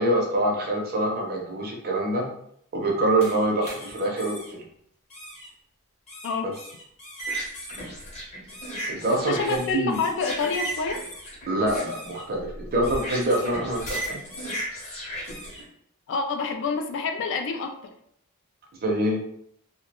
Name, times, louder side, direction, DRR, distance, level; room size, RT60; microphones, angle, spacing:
voice 1, 0.0-2.3 2.7-4.6 6.4-6.5 8.9-10.0 11.5-14.2 18.8-19.2, right 1 dB, 45° right, 0 dB, 0.6 m, -25 dB
sound 1, 3.2-4.5 5.1-5.5 6.1-15.6, right 1 dB, 30° left, 0.8 m, -36 dB
voice 2, 9.1-11.0 16.1-17.7, left 4 dB, 55° left, 6 dB, 0.3 m, -27 dB
2.2 x 2.1 x 2.9 m, 0.69 s
head